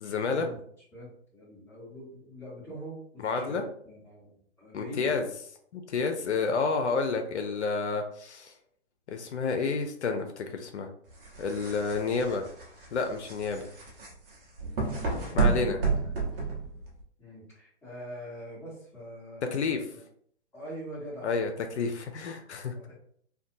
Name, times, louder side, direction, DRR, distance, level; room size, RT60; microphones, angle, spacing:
voice 1, 0.0-0.5 3.2-3.6 4.7-5.3 5.7-8.5 9.1-10.9 11.4-12.5 12.9-13.7 15.3-15.8 19.5-19.8 21.2-22.7, left 4 dB, 75° left, 5 dB, 0.5 m, -30 dB
voice 2, 0.9-5.1 17.2-20.0 20.5-21.7 22.7-23.0, equal, 5° left, -9 dB, 1.1 m, -44 dB
sound 1, 11.1-17.0, right 4 dB, 55° right, 0.9 m, -30 dB
2.6 x 2.2 x 2.5 m, 0.62 s
hypercardioid pair, 130°, 35 cm